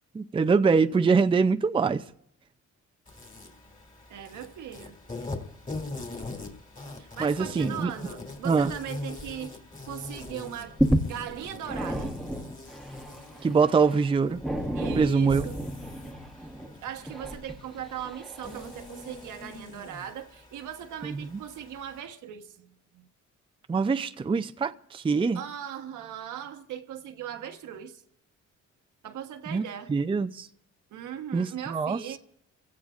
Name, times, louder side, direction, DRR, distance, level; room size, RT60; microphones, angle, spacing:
voice 1, 0.1-2.0 7.2-7.9 8.4-8.7 13.4-14.4 14.7-15.4 21.0-21.4 23.7-25.4 29.5-30.5 31.3-32.2, right 5 dB, 15° right, 0.5 m, -24 dB
Insect, 3.1-22.0, left 2 dB, 25° left, 2.6 m, -43 dB
voice 2, 4.1-5.0 6.9-9.6 9.9-10.8 11.0-12.2 14.7-15.6 16.8-23.1 25.3-28.0 29.0-29.9 30.9-32.2, right 9 dB, 80° right, 1.3 m, -39 dB
sound 1, 9.9-10.1 10.4-19.1 19.7-19.8, equal, ahead, 1.2 m, -32 dB
29.0 x 16.0 x 2.5 m
cardioid pair, 90°, 30 cm